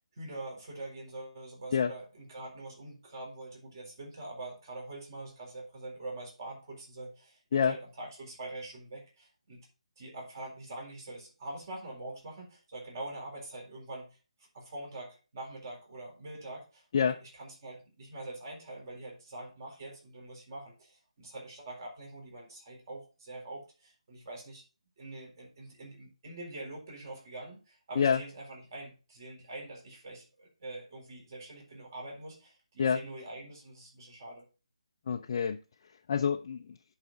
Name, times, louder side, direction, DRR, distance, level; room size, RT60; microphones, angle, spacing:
voice 1, 0.1-9.7 10.0-14.1 14.5-16.9 17.2-24.6 25.0-34.4, right 2 dB, 35° right, 4.0 m, -44 dB
voice 2, 35.1-35.6 36.1-36.7, left 7 dB, 35° left, 0.5 m, -27 dB
10.0 x 4.8 x 3.9 m
hypercardioid pair, 165°, 3 cm